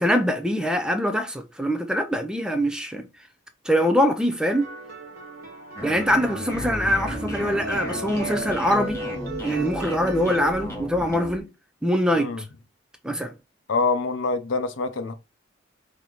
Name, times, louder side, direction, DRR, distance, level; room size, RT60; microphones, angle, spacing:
voice 1, 0.0-3.1 3.7-4.7 5.8-9.0 9.4-11.5 11.8-12.4 13.0-13.3, equal, 5° right, 0.4 m, -23 dB
sound 1, 4.5-10.5, right 2 dB, 50° right, 1.1 m, -35 dB
sound 2, 5.8-11.4, equal, 15° left, 1.1 m, -34 dB
voice 2, 13.7-15.1, left 3 dB, 70° left, 0.6 m, -25 dB
4.7 x 2.8 x 3.8 m
head